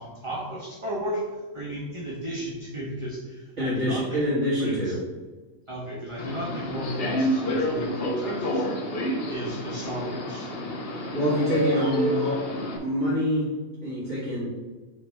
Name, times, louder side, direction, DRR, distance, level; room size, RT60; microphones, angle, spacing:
voice 1, 0.0-4.3 4.6-4.9 5.7-8.7 9.3-10.5 10.8-11.1 11.7-11.8, right 1 dB, 25° right, -4 dB, 0.8 m, -34 dB
voice 2, 3.6-5.0 11.1-13.5 13.8-14.5, equal, 55° right, -11 dB, 2.3 m, -26 dB
Subway metro underground, 6.2-12.8, equal, 50° left, 1.0 m, -29 dB
6.7 x 3.2 x 4.6 m, 1.3 s
omnidirectional pair, 1.5 m